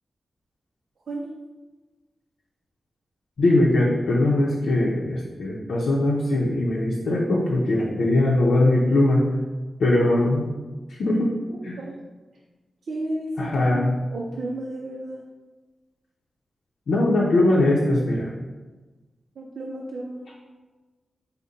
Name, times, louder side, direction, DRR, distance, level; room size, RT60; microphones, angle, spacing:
voice 1, 3.4-9.2 9.8-10.4 10.9-11.3 11.6-11.8 13.4-14.0 16.9-18.3, left 1 dB, 80° left, -4 dB, 0.6 m, -21 dB
voice 2, 11.5-12.0 12.8-13.8 14.1-15.2 19.4-20.4, right 1 dB, 80° right, -2 dB, 0.4 m, -33 dB
5.0 x 2.1 x 4.0 m, 1.3 s
wide cardioid pair, 145°, 0 cm